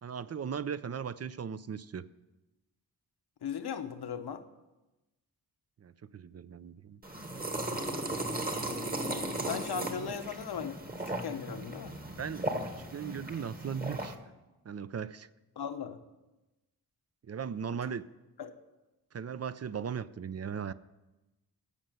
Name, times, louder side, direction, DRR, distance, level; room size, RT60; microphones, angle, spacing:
voice 1, 0.0-2.0 5.8-7.0 10.0-10.2 12.0-14.2 14.6-15.3 17.3-18.0 19.1-20.7, right 7 dB, 40° right, 14 dB, 0.5 m, -38 dB
voice 2, 3.4-4.4 9.4-11.9 15.6-16.0 18.4-18.5, left 7 dB, 80° left, 8 dB, 1.1 m, -38 dB
sound 1, 7.0-14.2, right 1 dB, 25° right, 1.4 m, -36 dB
15.5 x 5.6 x 9.0 m, 1.0 s
wide cardioid pair, 115°, 38 cm